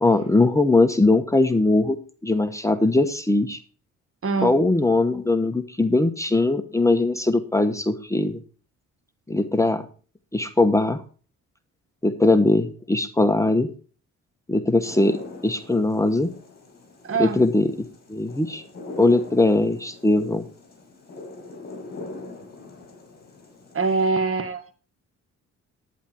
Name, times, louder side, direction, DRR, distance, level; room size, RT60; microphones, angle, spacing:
voice 1, 0.0-2.0 2.2-3.6 4.4-8.4 9.3-9.9 10.3-11.0 12.0-13.7 14.5-15.2 15.4-16.3 17.2-17.7 18.1-18.6 19.0-20.4, left 2 dB, 10° left, 9 dB, 1.2 m, -20 dB
voice 2, 4.2-4.6 17.0-17.4 23.7-24.8, right 4 dB, 45° right, 9 dB, 1.8 m, -24 dB
sound 1, 14.8-24.1, left 2 dB, 30° left, 6.5 m, -42 dB
11.0 x 9.8 x 4.5 m, 0.39 s
cardioid pair, 90°, 30 cm